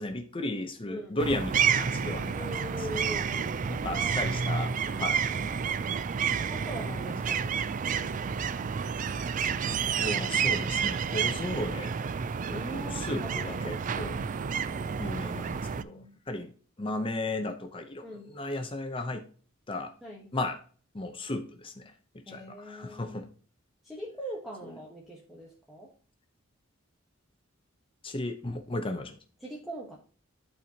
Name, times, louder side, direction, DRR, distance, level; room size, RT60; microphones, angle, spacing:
voice 1, 0.0-2.3 2.8-2.9 3.7-5.2 9.6-11.9 12.4-14.2 15.0-16.5 16.8-19.2 19.7-19.9 20.3-20.6 20.9-23.3 24.6-24.8 28.0-29.2, left 2 dB, 25° left, 6 dB, 0.7 m, -35 dB
voice 2, 0.9-1.2 2.3-5.0 6.5-8.5 12.5-13.8 14.7-15.2 15.6-16.1 18.0-18.3 20.0-20.3 22.2-23.2 23.8-25.9 29.4-30.0, equal, ahead, -3 dB, 1.2 m, -42 dB
sound 1, 1.2-15.8, right 6 dB, 40° right, 0.4 m, -30 dB
11.0 x 4.4 x 2.8 m, 0.42 s
head